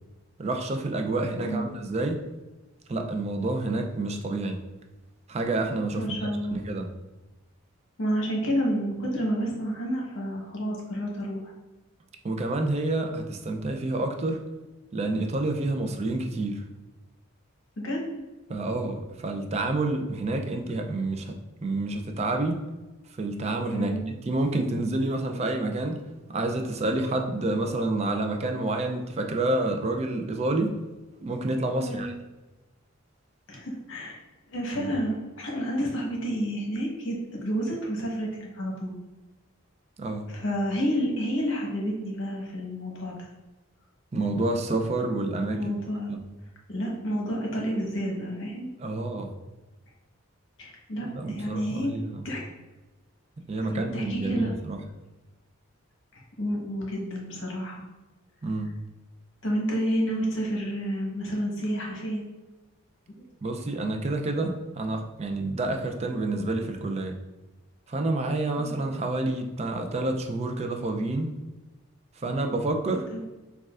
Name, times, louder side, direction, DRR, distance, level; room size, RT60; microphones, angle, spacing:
voice 1, 0.4-2.2 2.9-4.6 5.3-6.9 12.2-14.4 14.9-16.6 18.5-22.6 23.2-26.0 26.3-30.8 31.2-32.1 34.7-34.9 40.0-40.3 44.1-45.7 46.1-46.2 48.8-49.3 51.1-52.3 53.5-54.8 58.4-58.7 63.4-67.2 67.9-71.3 72.2-73.1, right 2 dB, 30° right, 4 dB, 0.4 m, -28 dB
voice 2, 6.0-6.6 8.0-11.5 17.8-18.2 23.7-24.0 31.8-32.1 33.5-34.2 34.5-38.9 40.3-43.3 45.5-46.1 46.7-48.7 50.6-52.0 52.2-52.5 53.7-54.5 56.1-57.8 59.4-62.2 68.6-68.8 73.1-73.2, equal, 65° left, -1 dB, 1.0 m, -30 dB
6.3 x 2.3 x 2.4 m, 1.1 s
head